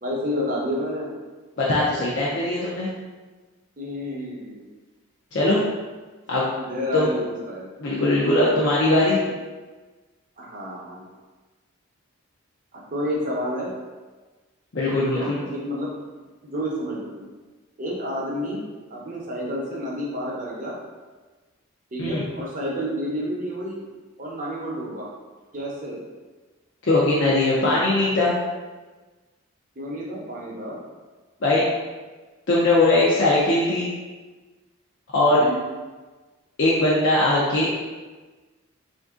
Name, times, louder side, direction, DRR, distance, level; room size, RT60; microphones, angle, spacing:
voice 1, 0.0-1.1 3.8-4.7 6.6-7.7 10.4-11.0 12.7-13.7 15.0-15.9 16.4-17.3 17.8-18.6 18.9-20.8 21.9-23.9 24.2-25.1 25.5-26.1 29.8-30.8 35.3-35.7, equal, 35° right, -3 dB, 0.7 m, -30 dB
voice 2, 1.6-2.9 5.3-5.6 6.3-6.5 6.9-7.1 7.8-9.2 14.7-15.4 22.0-22.2 26.8-28.3 31.4-31.6 32.5-33.9 35.1-35.4 36.6-37.9, left 2 dB, 55° left, -6 dB, 0.5 m, -20 dB
3.4 x 2.6 x 3.6 m, 1.3 s
head